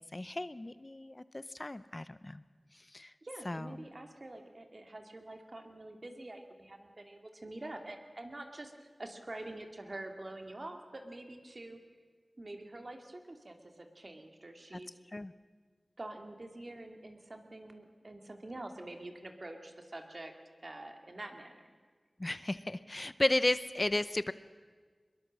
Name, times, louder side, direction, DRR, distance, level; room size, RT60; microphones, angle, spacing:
voice 1, 0.0-2.4 2.7-3.1 3.4-3.7 14.7-14.8 15.1-15.3 22.2-24.3, left 1 dB, 35° left, 15 dB, 0.6 m, -34 dB
voice 2, 3.2-11.8 12.4-15.0 16.0-20.3 20.6-21.7, right 2 dB, 50° right, 4 dB, 2.6 m, -46 dB
23.0 x 22.0 x 7.6 m, 1.5 s
wide cardioid pair, 55°, 0 cm